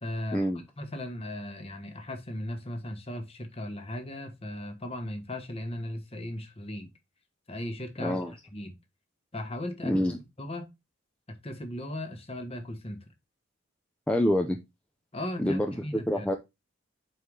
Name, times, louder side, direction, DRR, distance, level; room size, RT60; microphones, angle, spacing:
voice 1, 0.0-0.5 0.8-6.9 7.5-8.2 8.5-8.8 9.3-9.9 10.4-10.7 11.3-13.0 15.1-16.3, left 1 dB, 30° left, 1.3 m, -37 dB
voice 2, 8.0-8.3 9.8-10.2 14.1-14.6 15.4-15.7 16.1-16.4, left 1 dB, 5° left, 0.5 m, -26 dB
4.7 x 4.7 x 5.2 m
head